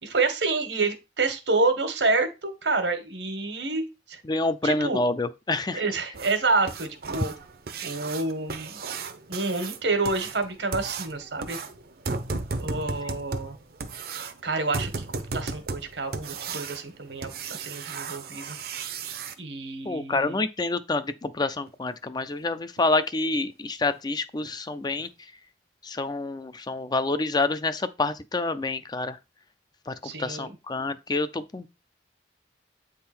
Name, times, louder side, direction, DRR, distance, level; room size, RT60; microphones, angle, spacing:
voice 1, 0.0-4.2 4.6-5.0 5.7-7.3 7.8-8.8 9.3-11.6 12.6-13.6 14.4-18.6 19.4-20.4 30.0-30.5, right 3 dB, 80° right, 1.5 m, -28 dB
voice 2, 4.3-5.8 19.8-25.1 25.8-29.2 29.9-31.7, left 3 dB, 25° left, 0.4 m, -27 dB
sound 1, 6.1-19.3 21.7-21.8 22.2-22.3 22.8-22.9 23.3-23.4 23.9-24.1 24.4-24.5 25.0-25.1, right 4 dB, 55° right, 0.8 m, -35 dB
8.5 x 3.7 x 4.3 m
head